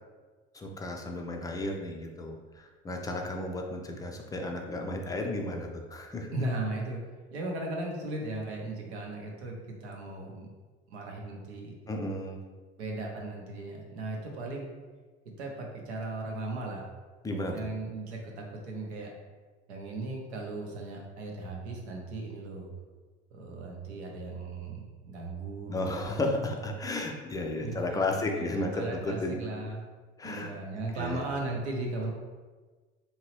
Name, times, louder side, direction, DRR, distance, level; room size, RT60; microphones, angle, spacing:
voice 1, 0.5-6.3 11.9-12.4 17.2-17.7 25.7-29.4 30.2-30.5 31.0-31.2, left 2 dB, 10° left, 2 dB, 0.4 m, -33 dB
voice 2, 6.3-7.0 7.3-10.5 10.9-11.8 12.8-14.7 15.4-16.8 17.5-19.1 19.7-22.7 23.3-26.3 27.6-29.8 30.2-32.1, right 2 dB, 75° right, 0 dB, 0.7 m, -37 dB
2.8 x 2.7 x 3.0 m, 1.3 s
figure-of-eight pair, 60°, 33 cm